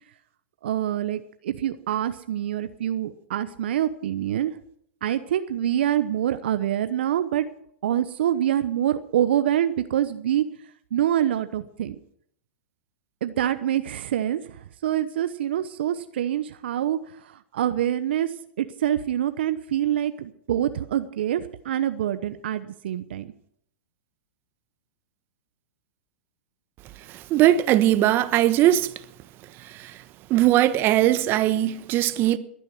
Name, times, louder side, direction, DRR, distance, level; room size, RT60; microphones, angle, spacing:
voice 1, 0.6-4.6 5.0-7.5 7.8-10.5 10.9-12.0 13.2-14.4 14.8-17.0 17.2-23.3, right 11 dB, 70° right, 1.0 m, -25 dB
voice 2, 27.3-28.9 29.7-29.9 30.3-32.4, right 13 dB, 35° right, 1.2 m, -20 dB
21.0 x 9.7 x 6.0 m
hypercardioid pair, 110°, 6 cm